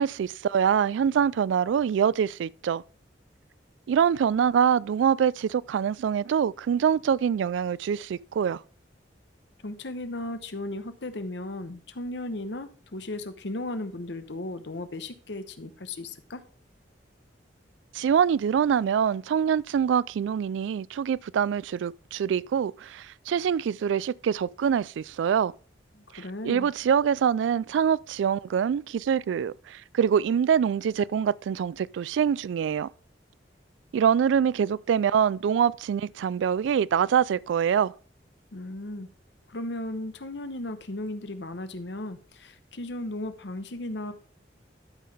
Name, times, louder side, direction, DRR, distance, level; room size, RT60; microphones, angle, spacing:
voice 1, 0.0-2.8 3.9-8.6 17.9-25.5 26.4-32.9 33.9-37.9, right 8 dB, 90° right, 0.3 m, -24 dB
voice 2, 9.6-16.4 25.9-26.7 38.5-39.1 39.5-44.1, left 2 dB, 70° left, 1.0 m, -36 dB
12.5 x 5.7 x 3.5 m
head